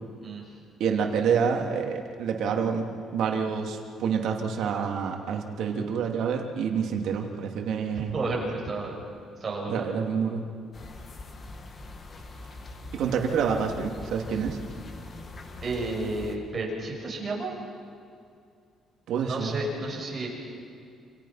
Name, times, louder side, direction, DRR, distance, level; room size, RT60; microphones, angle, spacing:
voice 1, 0.8-2.9 3.1-8.2 9.7-10.4 12.9-14.6 19.1-19.6, right 6 dB, 70° right, 2 dB, 2.9 m, -27 dB
voice 2, 8.1-8.9 9.4-9.8 14.3-14.4 15.6-17.6 19.2-20.3, right 2 dB, 25° right, -2 dB, 7.0 m, -31 dB
sound 1, 10.7-16.4, left 2 dB, 35° left, 2.1 m, -42 dB
28.5 x 27.5 x 5.9 m, 2.4 s
cardioid pair, 150°, 0 cm